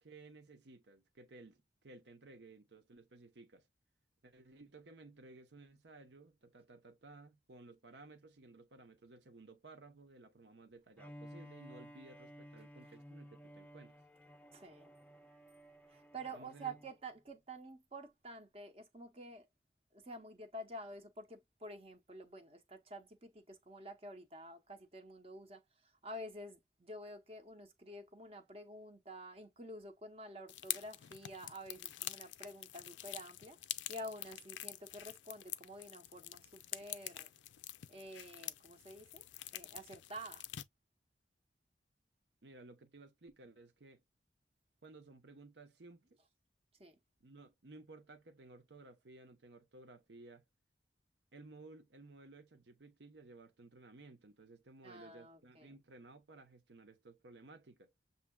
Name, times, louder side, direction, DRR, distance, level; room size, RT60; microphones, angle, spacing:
voice 1, 0.0-3.7 4.2-14.0 16.3-16.8 42.4-44.0 44.8-46.2 47.2-50.4 51.3-57.9, right 3 dB, 75° right, 0.9 m, -57 dB
Bowed string instrument, 11.0-17.0, equal, 10° left, 0.4 m, -55 dB
voice 2, 14.5-14.9 15.9-19.5 19.9-33.6 33.9-37.3 37.9-39.3 39.5-40.4 46.8-47.0 54.8-55.7, right 1 dB, 35° right, 0.8 m, -49 dB
sound 1, 30.5-40.6, left 14 dB, 90° left, 0.4 m, -46 dB
7.2 x 2.7 x 2.2 m
head